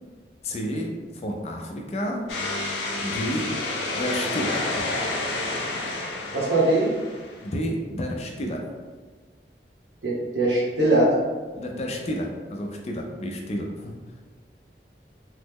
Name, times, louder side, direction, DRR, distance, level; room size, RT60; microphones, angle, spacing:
voice 1, 0.4-2.2 3.0-3.5 3.9-4.6 7.4-8.6 11.5-13.9, equal, 35° left, 1 dB, 0.4 m, -30 dB
sound 1, 2.3-7.5, left 2 dB, 90° left, 0.6 m, -29 dB
voice 2, 6.3-6.9 10.0-11.1, right 2 dB, 85° right, -5 dB, 1.0 m, -21 dB
3.1 x 2.0 x 3.5 m, 1.4 s
head